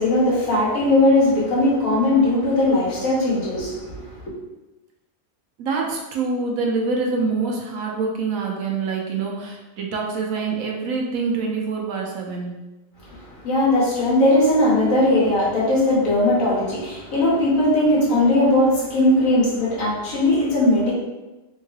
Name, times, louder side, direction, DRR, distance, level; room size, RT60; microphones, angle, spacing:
voice 1, 0.0-4.2 13.1-20.9, left 1 dB, 80° left, -7 dB, 1.6 m, -19 dB
voice 2, 5.6-12.6, right 4 dB, 85° right, 0 dB, 1.1 m, -25 dB
3.6 x 3.1 x 2.3 m, 1.1 s
omnidirectional pair, 1.4 m